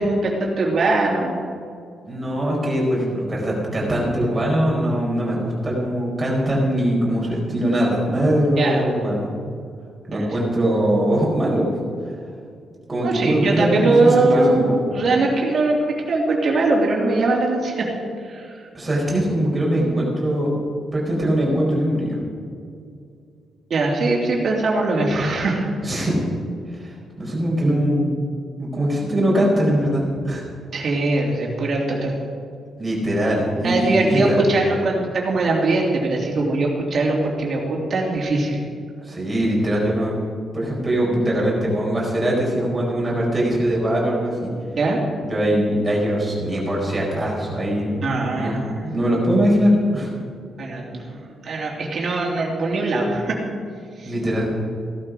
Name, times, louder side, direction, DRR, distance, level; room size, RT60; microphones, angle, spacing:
voice 1, 0.0-1.4 8.6-8.8 10.1-10.3 13.0-17.9 18.2-18.7 23.7-25.7 30.7-32.1 33.6-38.6 44.8-45.0 48.0-48.8 50.6-53.4 54.0-54.1, right 2 dB, 45° right, -2 dB, 3.1 m, -21 dB
voice 2, 2.1-9.3 10.1-11.7 12.9-14.7 18.7-20.5 20.9-22.2 25.8-26.2 26.7-28.1 28.6-30.4 32.8-34.4 39.0-40.2 40.5-44.5 45.2-48.0 48.3-48.5 48.8-50.1 54.0-54.5, equal, 15° right, -4 dB, 4.6 m, -21 dB
16.5 x 12.0 x 5.1 m, 2.3 s
cardioid pair, 150°, 0 cm